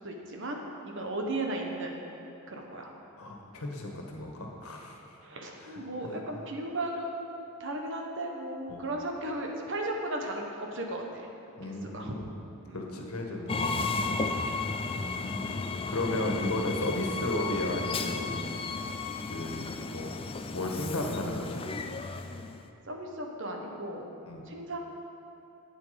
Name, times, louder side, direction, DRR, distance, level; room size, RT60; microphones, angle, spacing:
voice 1, 0.0-2.0 2.5-2.9 5.2-7.3 7.6-11.3 11.6-12.2 12.6-12.8 22.9-24.0 24.5-24.8, right 1 dB, 55° right, 1 dB, 1.4 m, -36 dB
voice 2, 3.2-5.0 6.0-6.4 8.7-8.8 11.6-12.3 12.7-14.6 14.9-15.5 15.9-18.5 19.3-20.2 20.5-21.6 24.2-24.5, left 1 dB, 75° left, 1 dB, 1.6 m, -34 dB
Train, 13.5-22.7, left 4 dB, 25° left, 0.4 m, -34 dB
12.0 x 8.9 x 5.3 m, 2.9 s
head